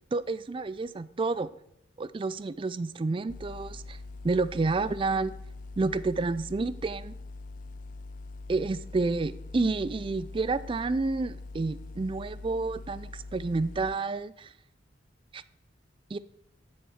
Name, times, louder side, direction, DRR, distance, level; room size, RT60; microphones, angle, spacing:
voice 1, 0.1-1.5 2.0-4.0 4.2-5.3 5.8-7.1 8.5-14.5 15.3-15.4 16.1-16.2, right 3 dB, 25° right, 17 dB, 0.3 m, -29 dB
sound 1, 3.3-14.0, left 3 dB, 45° left, 0.4 m, -43 dB
7.9 x 7.3 x 6.3 m, 0.77 s
head